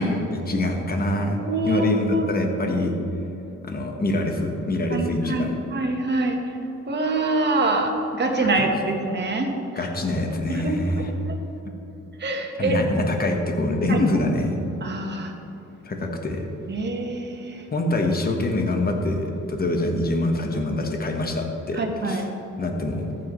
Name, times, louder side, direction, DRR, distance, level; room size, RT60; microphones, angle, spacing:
voice 1, 0.0-1.4 1.6-2.9 3.6-5.6 8.3-8.7 9.7-11.1 12.6-14.6 15.8-16.4 17.7-22.3 22.6-23.1, left 1 dB, 30° left, 3 dB, 1.4 m, -25 dB
voice 2, 1.4-2.3 4.9-6.4 6.9-9.5 10.5-10.7 11.3-11.4 12.2-12.8 13.9-14.0 14.8-15.3 16.7-17.6 21.8-22.2, right 2 dB, 35° right, 3 dB, 1.5 m, -25 dB
14.0 x 7.8 x 3.2 m, 3.0 s
cardioid pair, 90°, 30 cm